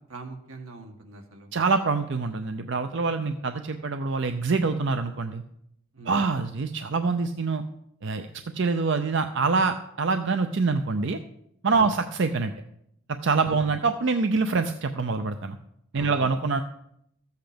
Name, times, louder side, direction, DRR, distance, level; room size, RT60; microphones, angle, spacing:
voice 1, 0.1-1.5 5.9-6.2 11.7-11.9 13.4-13.7 15.9-16.3, right 2 dB, 85° right, 3 dB, 1.9 m, -42 dB
voice 2, 1.5-5.4 6.1-7.6 8.0-11.2 11.6-12.5 13.1-15.6 15.9-16.6, right 4 dB, 55° right, 8 dB, 0.5 m, -25 dB
14.0 x 8.1 x 5.1 m, 0.77 s
head